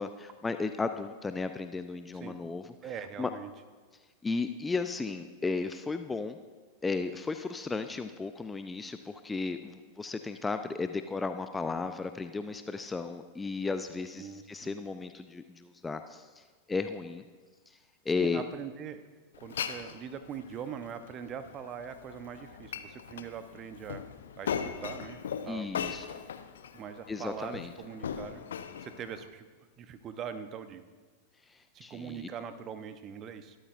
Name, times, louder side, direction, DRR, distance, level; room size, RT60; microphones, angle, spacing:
voice 1, 0.0-2.6 3.2-3.3 4.2-6.4 6.8-16.4 16.7-17.2 18.1-18.4 25.5-26.1 27.1-27.7 31.5-32.3, left 4 dB, 10° left, 8 dB, 0.6 m, -34 dB
voice 2, 2.8-3.5 14.2-14.8 18.1-19.0 19.4-24.0 24.4-25.9 26.7-28.4 28.8-29.5 29.8-30.8 31.7-33.6, right 7 dB, 30° right, 10 dB, 1.0 m, -42 dB
Glass, 19.3-29.3, left 7 dB, 65° left, 0.7 m, -40 dB
21.5 x 13.0 x 2.6 m, 1.4 s
figure-of-eight pair, 90°, 0 cm